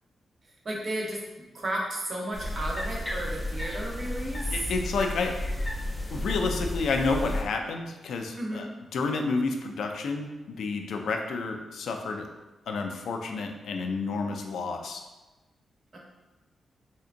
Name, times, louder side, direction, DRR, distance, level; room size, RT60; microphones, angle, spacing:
voice 1, 0.6-4.7 8.3-8.7 15.9-16.0, right 1 dB, 40° right, -2 dB, 0.7 m, -33 dB
sound 1, 2.3-7.4, left 1 dB, 10° left, 0.4 m, -32 dB
voice 2, 4.5-5.3 6.1-8.7 8.9-12.3 12.7-15.0, left 4 dB, 85° left, 4 dB, 0.3 m, -30 dB
3.5 x 2.8 x 2.5 m, 1.1 s
wide cardioid pair, 135°, 0 cm